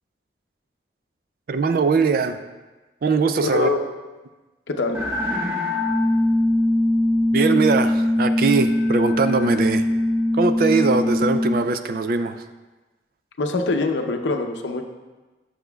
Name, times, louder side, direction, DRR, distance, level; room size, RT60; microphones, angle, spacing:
voice 1, 1.5-2.4 3.0-3.7 7.3-9.8 10.4-12.4, right 4 dB, 55° right, 10 dB, 0.3 m, -21 dB
voice 2, 3.4-3.8 4.7-5.0 13.4-14.8, left 3 dB, 85° left, 5 dB, 0.6 m, -23 dB
sound 1, 4.9-11.6, left 1 dB, 15° right, 0.9 m, -21 dB
8.0 x 6.2 x 2.3 m, 1.2 s
head